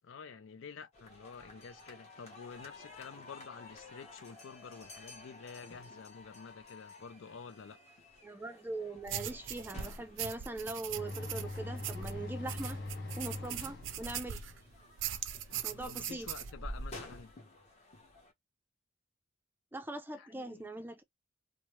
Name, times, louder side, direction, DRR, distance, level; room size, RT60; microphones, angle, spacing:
voice 1, 0.0-7.8 15.6-17.3 20.1-20.7, left 5 dB, 75° left, 0.4 m, -49 dB
sound 1, 0.9-18.3, left 2 dB, 35° left, 0.9 m, -55 dB
voice 2, 8.2-12.8 13.2-14.4 15.6-16.3 19.7-21.0, right 2 dB, 10° right, 0.4 m, -41 dB
sound 2, 9.1-14.6 15.0-16.5, right 10 dB, 70° right, 0.4 m, -41 dB
sound 3, 10.9-17.2, left 1 dB, 55° left, 0.9 m, -43 dB
2.9 x 2.1 x 3.0 m
head